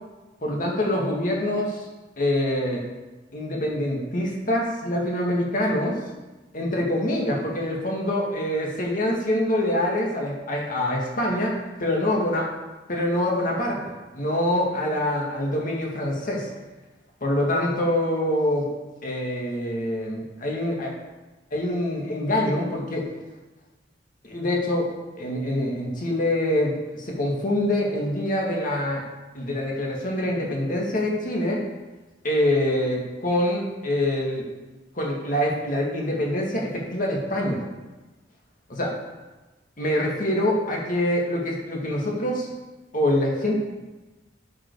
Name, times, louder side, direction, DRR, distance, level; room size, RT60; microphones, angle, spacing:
voice 1, 0.4-1.9 2.2-2.8 3.3-6.0 6.5-12.5 12.9-16.5 17.2-18.7 19.0-20.9 21.5-23.1 24.2-24.9 25.2-29.0 29.3-31.6 32.2-34.5 35.0-37.6 38.7-38.9 39.8-42.5 42.9-43.6, left 1 dB, 45° left, -2 dB, 2.2 m, -25 dB
11.5 x 6.1 x 4.9 m, 1.2 s
head